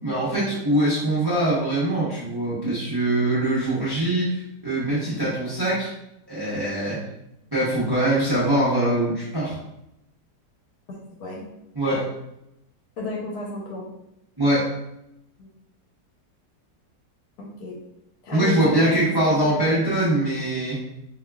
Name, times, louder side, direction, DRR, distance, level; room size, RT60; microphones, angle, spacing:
voice 1, 0.0-5.9 6.3-7.0 7.5-9.6 11.7-12.1 14.4-14.7 18.3-20.8, right 1 dB, 30° right, -9 dB, 0.4 m, -23 dB
voice 2, 10.9-11.4 13.0-13.9 15.4-15.5 17.4-17.8 18.2-19.8, left 3 dB, 65° left, -2 dB, 1.1 m, -32 dB
3.9 x 2.8 x 2.3 m, 0.85 s
omnidirectional pair, 2.0 m